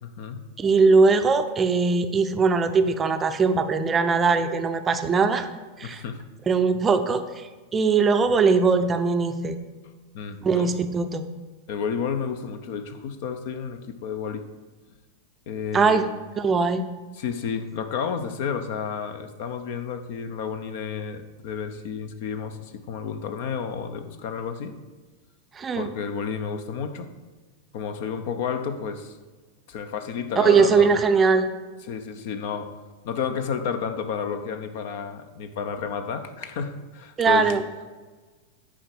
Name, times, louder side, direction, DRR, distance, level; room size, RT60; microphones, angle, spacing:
voice 1, 0.0-0.4 5.8-6.2 10.1-10.7 11.7-14.4 15.5-16.0 17.2-24.7 25.7-27.1 27.7-29.1 29.7-30.9 31.8-32.7 33.0-37.5, left 6 dB, 50° left, 9 dB, 0.8 m, -31 dB
voice 2, 0.6-5.5 5.8-6.0 6.5-9.6 10.4-11.2 15.7-16.1 16.4-16.8 25.5-25.9 30.4-31.5 37.2-37.6, right 4 dB, 20° right, 8 dB, 0.6 m, -20 dB
10.0 x 4.9 x 6.2 m, 1.3 s
figure-of-eight pair, 90°, 0 cm